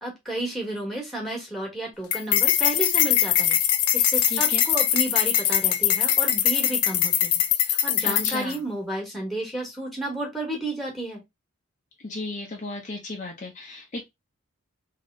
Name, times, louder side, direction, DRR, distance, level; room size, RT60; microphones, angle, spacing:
voice 1, 0.0-3.6 3.9-7.3 7.6-11.2, right 1 dB, ahead, 1.5 m, -32 dB
sound 1, 2.1-8.6, left 11 dB, 85° left, 0.6 m, -22 dB
voice 2, 4.3-4.6 8.0-8.6 12.0-14.0, left 2 dB, 35° left, 0.7 m, -34 dB
3.5 x 2.9 x 3.7 m
head